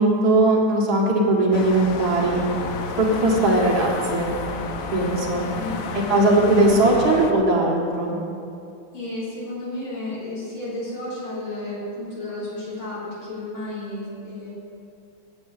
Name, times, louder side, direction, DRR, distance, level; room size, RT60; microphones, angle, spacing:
voice 1, 0.0-2.4 3.0-4.3 4.9-5.4 6.1-8.2, right 2 dB, 50° right, -3 dB, 2.4 m, -19 dB
sound 1, 1.5-7.3, left 4 dB, 65° left, 0.9 m, -31 dB
voice 2, 5.6-5.9 8.9-14.5, left 2 dB, 85° left, -10 dB, 4.4 m, -32 dB
8.7 x 8.0 x 8.3 m, 2.7 s
omnidirectional pair, 2.2 m